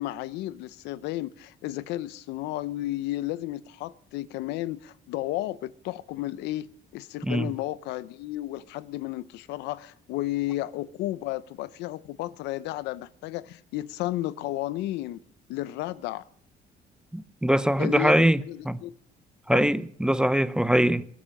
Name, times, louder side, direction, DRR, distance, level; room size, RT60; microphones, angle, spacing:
voice 1, 0.0-15.2 15.5-16.2 17.8-18.9 19.5-19.7, left 15 dB, 90° left, 0.7 m, -33 dB
voice 2, 17.1-18.8 19.5-21.1, right 1 dB, 5° right, 0.7 m, -23 dB
21.5 x 8.6 x 7.4 m
cardioid pair, 110°, 17 cm